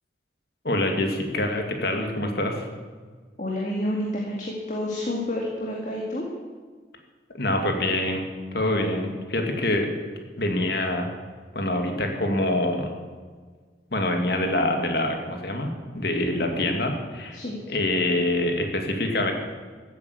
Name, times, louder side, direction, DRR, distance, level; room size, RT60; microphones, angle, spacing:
voice 1, 0.6-2.7 7.3-8.2 8.5-9.9 10.4-11.1 11.5-12.9 13.9-15.7 15.9-17.4 17.7-19.3, left 1 dB, 55° left, 3 dB, 2.2 m, -25 dB
voice 2, 3.4-6.2 17.3-17.6, left 1 dB, 40° left, -2 dB, 2.0 m, -29 dB
14.5 x 8.7 x 8.4 m, 1.5 s
head